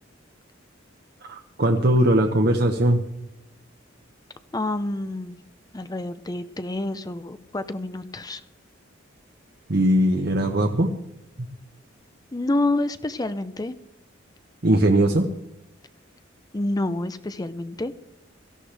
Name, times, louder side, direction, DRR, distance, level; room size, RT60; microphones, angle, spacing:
voice 1, 1.2-3.0 9.7-10.9 14.6-15.2, right 1 dB, 55° right, 4 dB, 1.0 m, -20 dB
voice 2, 4.5-5.4 5.7-8.4 12.3-13.8 16.5-17.9, left 2 dB, 20° left, 12 dB, 0.5 m, -28 dB
17.5 x 14.0 x 3.4 m, 0.83 s
head